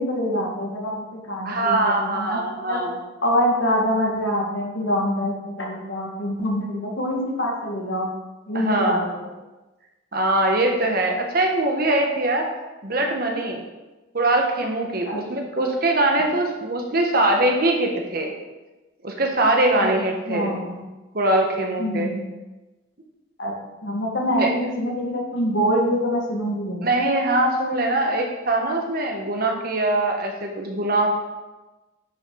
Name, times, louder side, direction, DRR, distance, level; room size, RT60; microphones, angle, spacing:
voice 1, 0.0-2.8 3.2-8.1 8.5-9.3 15.1-15.2 19.8-19.9 20.3-20.8 21.8-22.3 23.4-23.5 23.8-26.9, equal, 65° left, -1 dB, 1.9 m, -25 dB
voice 2, 1.4-3.0 8.5-9.0 10.1-12.5 12.8-13.6 14.1-18.3 19.0-20.6 21.1-22.1 24.4-24.5 26.8-31.1, right 2 dB, 50° right, 2 dB, 1.3 m, -22 dB
9.9 x 6.1 x 3.9 m, 1.1 s
head